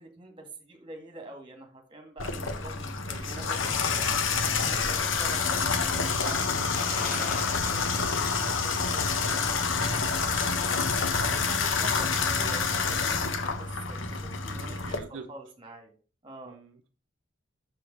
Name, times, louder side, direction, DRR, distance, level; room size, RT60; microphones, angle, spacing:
voice 1, 0.0-4.1 4.6-8.1 8.5-10.8 11.3-15.9 16.2-16.6, right 2 dB, 25° right, 4 dB, 2.0 m, -45 dB
Water tap faucet / Bathtub (filling or washing), 2.2-15.0, left 5 dB, 85° left, 1.0 m, -28 dB
sound 1, 6.7-7.8 8.2-8.3 9.8-10.6 11.0-11.1, left 5 dB, 45° left, 0.8 m, -39 dB
voice 2, 14.6-15.3 16.4-16.9, right 4 dB, 70° right, 6 dB, 0.7 m, -46 dB
6.0 x 5.0 x 6.2 m, 0.40 s
head